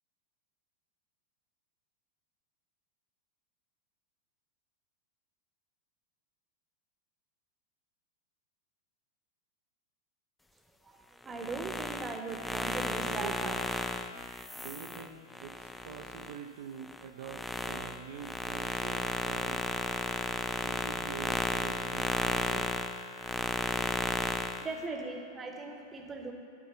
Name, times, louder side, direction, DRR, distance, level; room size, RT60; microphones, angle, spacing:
voice 1, 11.2-13.7 24.6-26.3, right 3 dB, 20° right, 3 dB, 0.9 m, -39 dB
sound 1, 11.3-16.4 16.8-24.7, left 2 dB, 5° left, 0.3 m, -34 dB
voice 2, 13.0-13.6 14.5-19.6 20.6-22.7, right 8 dB, 55° right, 3 dB, 0.4 m, -45 dB
9.5 x 3.5 x 6.9 m, 2.7 s
figure-of-eight pair, 90°, 0 cm